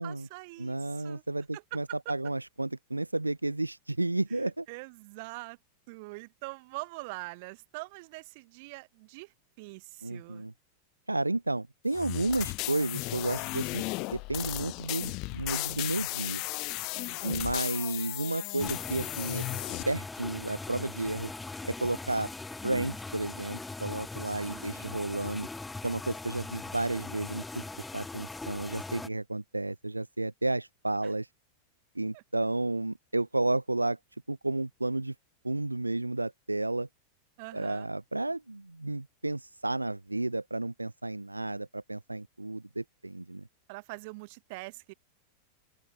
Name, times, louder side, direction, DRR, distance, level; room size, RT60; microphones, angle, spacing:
voice 1, 0.0-1.2 1.5-2.1 4.3-5.6 5.9-10.5 16.9-17.5 24.3-25.2 31.0-31.1 32.1-32.2 37.4-37.9 43.7-44.9, right 27 dB, 50° right, 0.7 m, -44 dB
voice 2, 0.6-4.6 10.0-10.5 11.1-13.9 14.1-16.4 17.2-19.4 19.9-21.3 21.6-22.3 22.6-25.5 25.8-27.6 27.9-31.3 32.0-34.0 34.3-35.1 35.4-36.9 37.5-43.4, right 2 dB, 85° right, 0.3 m, -32 dB
sound 1, 11.9-19.8, left 25 dB, 40° left, 0.5 m, -35 dB
sound 2, 18.6-29.1, left 3 dB, 10° left, 1.0 m, -40 dB
open air
figure-of-eight pair, 90°, 0 cm